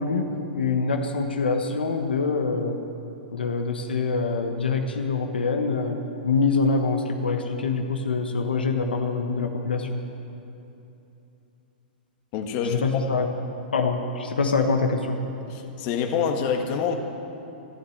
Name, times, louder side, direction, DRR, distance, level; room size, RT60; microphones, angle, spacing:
voice 1, 0.0-2.8 3.3-6.0 6.2-10.0 12.7-13.3 13.7-15.2, left 4 dB, 90° left, 4 dB, 1.4 m, -25 dB
voice 2, 12.3-12.9 15.5-16.9, left 6 dB, 45° left, 4 dB, 1.6 m, -26 dB
13.0 x 12.5 x 8.0 m, 2.9 s
hypercardioid pair, 120°, 5 cm